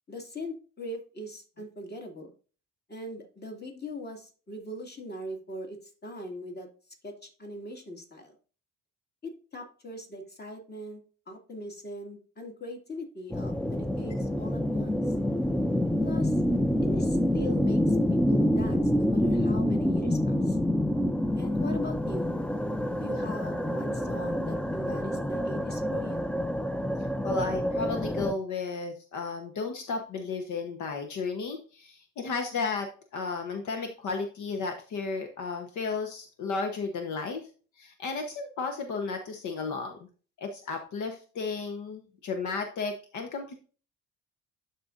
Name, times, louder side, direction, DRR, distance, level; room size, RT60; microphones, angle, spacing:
voice 1, 0.1-2.3 2.9-5.8 6.0-6.7 7.0-8.3 9.2-11.0 11.3-14.9 16.0-16.4 16.8-20.6 21.3-22.4 23.0-26.2, left 1 dB, 35° left, 2 dB, 2.3 m, -40 dB
sound 1, 13.3-28.3, left 1 dB, 5° left, 0.4 m, -27 dB
voice 2, 27.2-37.5 37.8-40.0 40.4-43.5, left 4 dB, 75° left, 5 dB, 1.1 m, -33 dB
12.0 x 4.3 x 2.6 m, 0.38 s
cardioid pair, 90°, 30 cm